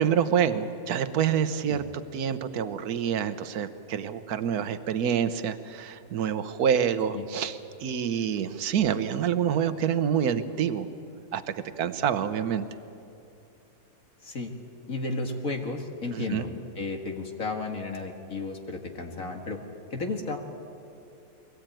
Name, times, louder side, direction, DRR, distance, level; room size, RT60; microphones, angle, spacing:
voice 1, 0.0-1.8 2.1-10.9 11.3-12.7 16.1-16.5, right 8 dB, 75° right, 11 dB, 1.4 m, -27 dB
voice 2, 14.9-16.5 16.8-19.6 19.9-20.4, left 3 dB, 55° left, 2 dB, 2.1 m, -33 dB
23.0 x 18.0 x 9.1 m, 2.7 s
omnidirectional pair, 1.7 m